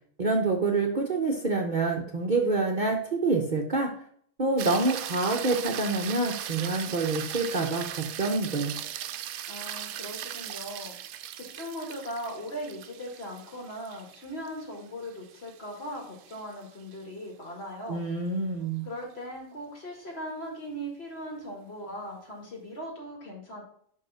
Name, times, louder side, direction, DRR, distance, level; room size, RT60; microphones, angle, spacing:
voice 1, 0.2-3.9 4.4-8.7 17.9-18.9, right 3 dB, 40° right, 1 dB, 0.9 m, -27 dB
sound 1, 4.6-17.0 21.4-21.5, right 11 dB, 90° right, 1.1 m, -39 dB
voice 2, 9.5-11.0 11.3-18.0 18.9-23.6, equal, 45° left, 0 dB, 2.4 m, -39 dB
5.6 x 5.3 x 6.0 m, 0.63 s
omnidirectional pair, 1.4 m